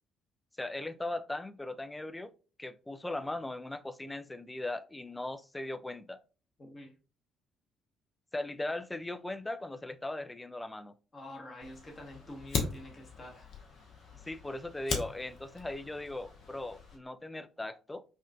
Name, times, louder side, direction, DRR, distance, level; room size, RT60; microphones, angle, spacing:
voice 1, 0.6-2.3 2.6-6.2 8.3-10.9 14.2-18.0, left 2 dB, 15° left, 0.4 m, -38 dB
voice 2, 6.6-6.9 11.1-13.5, left 1 dB, 35° left, 1.0 m, -47 dB
Fire, 11.6-17.0, left 5 dB, 55° left, 0.7 m, -40 dB
4.8 x 2.4 x 2.3 m
figure-of-eight pair, 45°, 0 cm